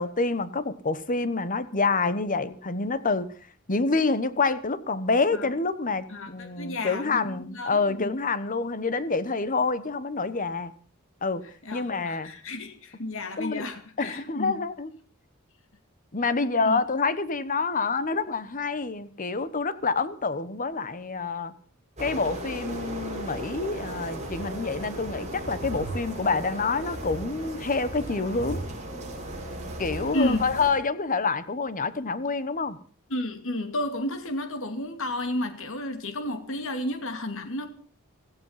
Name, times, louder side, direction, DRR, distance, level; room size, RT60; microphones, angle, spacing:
voice 1, 0.0-3.3 3.7-10.7 11.2-11.4 11.7-12.3 13.4-13.6 14.0-14.9 16.1-21.5 22.0-28.6 29.8-32.8, left 4 dB, 40° left, 1.1 m, -27 dB
voice 2, 6.1-8.1 11.6-14.6 16.6-16.7 30.1-30.5 33.1-37.7, left 1 dB, 65° left, 2.6 m, -32 dB
sound 1, 22.0-30.7, right 1 dB, 35° right, 5.5 m, -36 dB
17.0 x 15.0 x 5.8 m
head